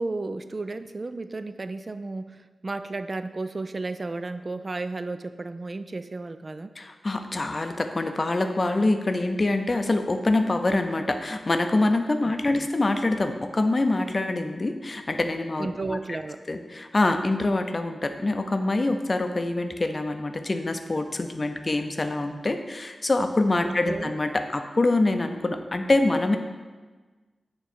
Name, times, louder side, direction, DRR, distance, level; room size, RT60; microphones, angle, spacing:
voice 1, 0.0-6.7 12.5-12.7 15.6-16.4 23.6-24.1, right 3 dB, 45° right, 11 dB, 0.3 m, -33 dB
voice 2, 6.8-16.0 16.5-26.4, left 2 dB, 40° left, 6 dB, 0.5 m, -25 dB
6.9 x 3.1 x 4.4 m, 1.3 s
cardioid pair, 60°, 0 cm